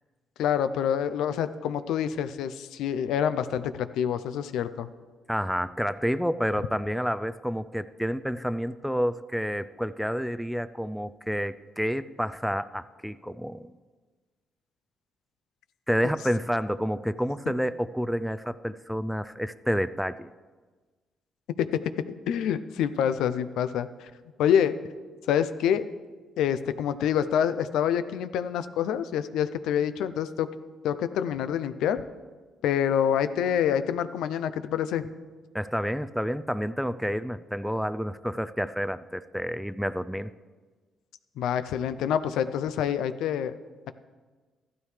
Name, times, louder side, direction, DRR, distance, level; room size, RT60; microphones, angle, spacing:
voice 1, 0.4-4.9 21.6-21.7 22.3-24.1 24.4-24.8 25.3-25.9 26.4-30.5 30.8-32.0 32.6-35.0 41.4-43.5, left 9 dB, 85° left, 12 dB, 0.5 m, -26 dB
voice 2, 5.3-13.7 15.9-20.3 35.5-40.3, equal, ahead, 14 dB, 0.4 m, -29 dB
14.0 x 12.5 x 3.3 m, 1.4 s
cardioid pair, 90°, 0 cm